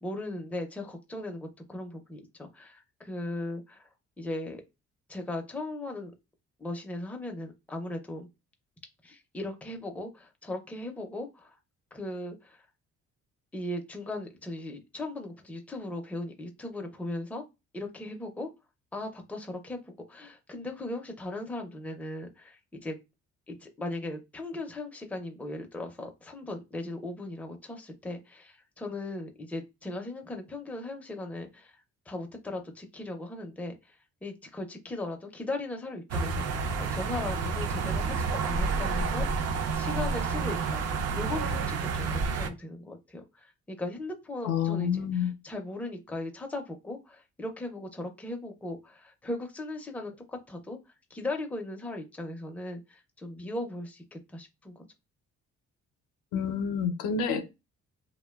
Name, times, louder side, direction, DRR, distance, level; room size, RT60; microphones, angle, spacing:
voice 1, 0.0-3.8 4.2-4.6 5.1-6.1 6.6-8.3 9.0-11.5 11.9-12.6 13.5-17.4 17.7-18.5 18.9-22.9 23.5-31.7 32.1-33.7 34.2-39.5 39.8-40.8 41.1-50.8 51.1-54.9, left 2 dB, 5° left, 0.4 m, -38 dB
sound 1, 36.1-42.5, right 4 dB, 55° right, 0.4 m, -29 dB
voice 2, 44.4-45.3 56.3-57.5, left 7 dB, 90° left, 0.5 m, -28 dB
2.7 x 2.1 x 2.2 m
cardioid pair, 90°, 30 cm